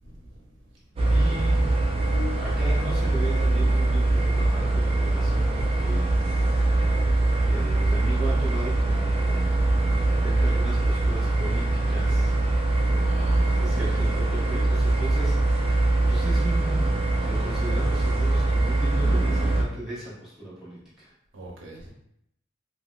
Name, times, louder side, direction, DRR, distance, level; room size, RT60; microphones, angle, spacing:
voice 1, 0.0-0.4 13.0-13.9 21.3-21.9, right 1 dB, 65° right, -2 dB, 0.7 m, -42 dB
sound 1, 1.0-19.6, right 2 dB, 25° right, 0.3 m, -23 dB
voice 2, 1.1-1.7 2.4-7.0 7.4-12.4 13.1-21.1, right 1 dB, ahead, -8 dB, 1.0 m, -37 dB
sound 2, 2.1-3.2, left 8 dB, 70° left, 0.6 m, -40 dB
2.9 x 2.9 x 2.3 m, 0.75 s
head